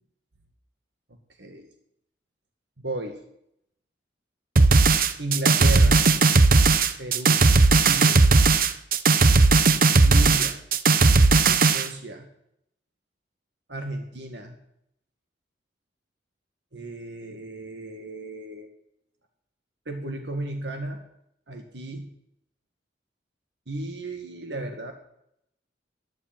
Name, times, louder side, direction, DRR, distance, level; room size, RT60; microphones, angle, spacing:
voice 1, 2.8-3.2 5.2-6.0 7.0-8.3 10.0-10.6 11.5-12.3 13.7-14.6 16.7-18.7 19.9-21.0 21.5-22.1 23.7-24.9, right 1 dB, 70° right, 5 dB, 2.0 m, -34 dB
sound 1, 4.6-11.9, right 3 dB, 50° right, 0.8 m, -17 dB
12.0 x 11.0 x 9.1 m, 0.76 s
head